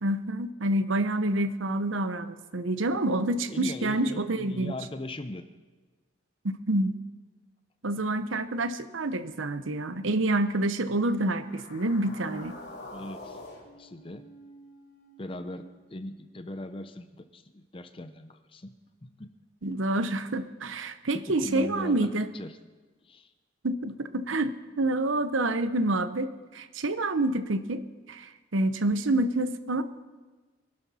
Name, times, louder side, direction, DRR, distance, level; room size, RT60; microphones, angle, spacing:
voice 1, 0.0-4.7 6.4-6.9 7.8-12.5 19.6-22.3 23.6-26.3 26.5-27.8 28.1-29.8, right 2 dB, 90° right, 12 dB, 0.9 m, -28 dB
voice 2, 3.5-5.4 12.9-13.4 13.8-14.3 15.2-19.3 21.1-22.6 23.0-23.3, left 1 dB, 25° left, 10 dB, 0.7 m, -39 dB
sound 1, 11.3-15.7, left 1 dB, 55° left, 3.7 m, -46 dB
23.5 x 11.5 x 4.3 m, 1.3 s
head